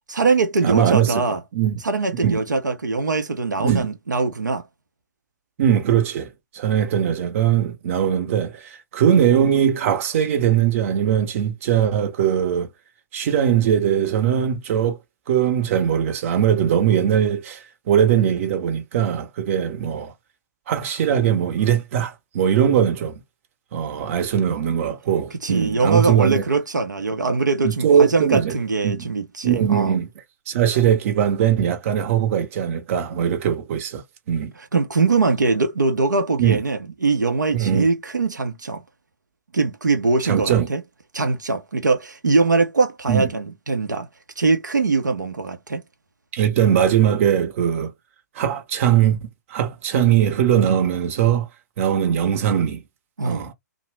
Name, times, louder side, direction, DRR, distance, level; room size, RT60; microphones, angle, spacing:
voice 1, 0.1-1.4 1.8-4.7 25.4-30.0 34.6-38.8 39.5-40.8 41.1-44.1 44.4-45.8 53.2-53.5, right 3 dB, 85° right, 0.6 m, -22 dB
voice 2, 0.6-1.2 1.5-1.8 2.2-2.4 3.6-3.9 5.6-12.7 13.1-15.0 15.3-20.1 20.7-23.2 23.7-26.4 27.6-28.5 28.8-29.0 29.4-30.1 30.5-34.0 34.3-34.5 36.4-36.6 37.5-37.9 40.2-40.7 43.1-43.3 46.3-47.9 48.3-51.5 51.8-52.8 53.2-53.5, right 9 dB, 45° right, 0.8 m, -20 dB
2.7 x 2.0 x 3.1 m
figure-of-eight pair, 125°, 10 cm